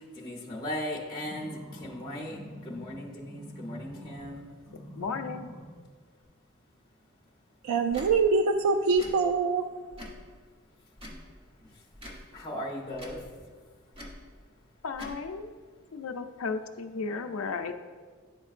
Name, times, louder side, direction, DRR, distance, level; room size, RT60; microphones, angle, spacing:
voice 1, 0.0-4.6 11.6-11.8 12.3-13.3, left 1 dB, 20° left, -3 dB, 0.8 m, -38 dB
sound 1, 1.2-4.3 4.7-5.7 6.2-6.3, equal, 70° right, 1.8 m, -45 dB
voice 2, 5.0-5.5 14.8-15.5 15.9-17.7, left 4 dB, 85° left, 6 dB, 0.5 m, -34 dB
voice 3, 7.6-9.6, right 4 dB, 90° right, 7 dB, 0.3 m, -24 dB
Tick / Tick-tock, 7.9-8.1 8.9-9.1 9.9-10.2 10.9-11.2 11.9-12.2 12.9-13.2 13.9-14.2 14.9-15.2, equal, 25° right, 1.0 m, -43 dB
11.0 x 4.4 x 2.5 m, 1.5 s
head